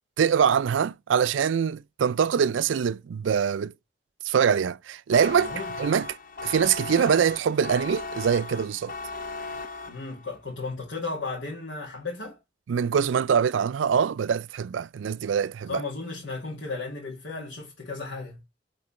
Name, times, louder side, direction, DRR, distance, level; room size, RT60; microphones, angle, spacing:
voice 1, 0.2-3.7 4.2-5.5 5.8-6.1 6.4-8.9 12.7-15.8, right 7 dB, 80° right, 0.4 m, -24 dB
sound 1, 5.1-10.4, left 3 dB, 45° left, 0.7 m, -37 dB
voice 2, 5.3-5.7 9.9-12.4 15.7-18.4, left 3 dB, 80° left, 2.0 m, -35 dB
8.7 x 3.8 x 4.3 m
head